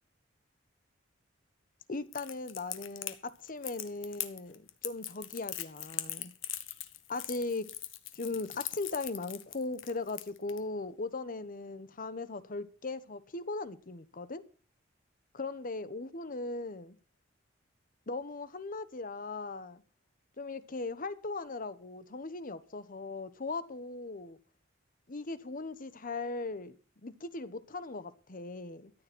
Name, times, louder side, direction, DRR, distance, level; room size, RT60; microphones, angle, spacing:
voice 1, 1.9-3.2 3.4-6.3 7.1-7.7 8.1-14.4 15.3-17.0 18.1-19.8 20.4-24.4 25.1-26.7 27.0-28.9, left 3 dB, 45° left, 1.1 m, -38 dB
Crackle, 2.1-10.6, left 13 dB, 80° left, 1.3 m, -40 dB
14.0 x 9.7 x 6.1 m
head